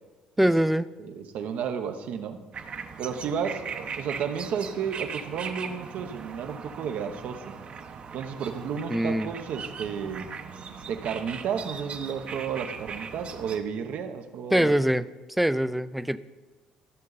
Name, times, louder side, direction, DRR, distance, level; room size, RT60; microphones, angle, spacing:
voice 1, 0.4-0.9 8.9-9.3 14.5-15.1 15.4-16.2, right 1 dB, 5° right, 14 dB, 0.4 m, -23 dB
voice 2, 1.0-2.4 3.0-7.6 8.1-10.3 10.9-14.7, right 7 dB, 70° right, 7 dB, 1.0 m, -32 dB
sound 1, 2.5-13.6, right 5 dB, 45° right, 0.9 m, -39 dB
13.5 x 6.7 x 4.0 m, 1.3 s
cardioid pair, 95°, 3 cm